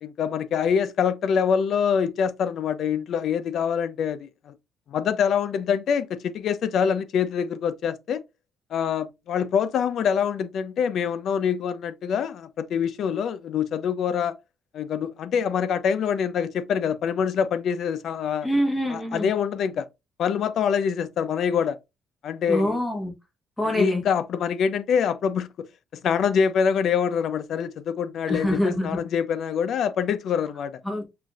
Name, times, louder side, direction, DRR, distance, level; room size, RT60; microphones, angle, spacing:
voice 1, 0.0-4.5 4.9-8.2 8.7-14.4 14.7-18.5 18.9-19.9 20.2-21.8 22.2-22.8 23.6-25.5 26.0-30.8, left 7 dB, 55° left, 0.4 m, -25 dB
voice 2, 18.4-19.3 22.5-23.1 23.6-24.0 28.3-29.0 30.8-31.1, equal, 5° left, 1.0 m, -25 dB
5.7 x 2.5 x 2.3 m
cardioid pair, 165°, 0 cm